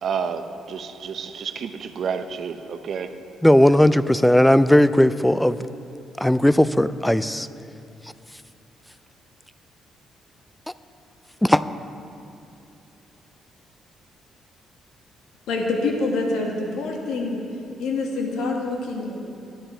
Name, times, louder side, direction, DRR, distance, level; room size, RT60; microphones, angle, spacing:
voice 1, 0.0-3.1, right 6 dB, 60° right, 9 dB, 0.7 m, -30 dB
voice 2, 3.4-5.6 6.2-7.5 11.4-11.6, left 1 dB, 5° left, 15 dB, 0.3 m, -17 dB
voice 3, 15.5-17.4 17.8-19.2, left 3 dB, 85° left, 0 dB, 1.7 m, -26 dB
12.5 x 10.0 x 4.5 m, 2.7 s
cardioid pair, 90°, 0 cm